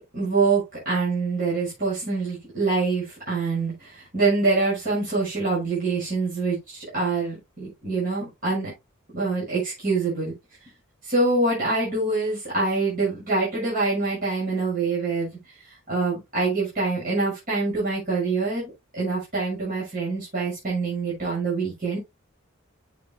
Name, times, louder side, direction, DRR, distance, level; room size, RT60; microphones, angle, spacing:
voice 1, 0.1-8.7 9.1-10.3 11.0-22.0, right 3 dB, 40° right, 6.5 m, -25 dB
9.6 x 8.4 x 2.3 m
head